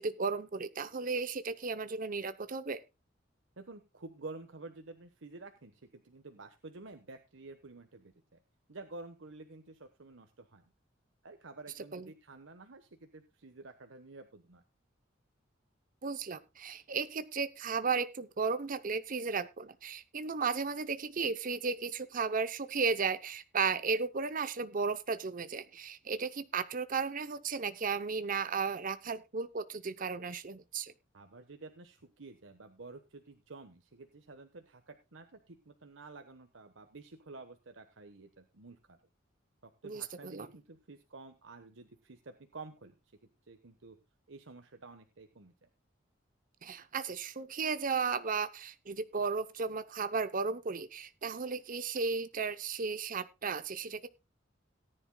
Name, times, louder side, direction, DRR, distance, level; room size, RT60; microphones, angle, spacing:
voice 1, 0.0-2.8 11.9-12.1 16.0-30.9 39.8-40.5 46.6-54.1, right 5 dB, 45° right, 12 dB, 0.7 m, -34 dB
voice 2, 3.6-8.4 8.7-10.6 11.2-14.6 31.1-39.0 39.6-42.9 43.5-44.0 44.3-45.7, right 3 dB, 90° right, 6 dB, 1.2 m, -50 dB
18.5 x 10.0 x 2.2 m, 0.26 s
head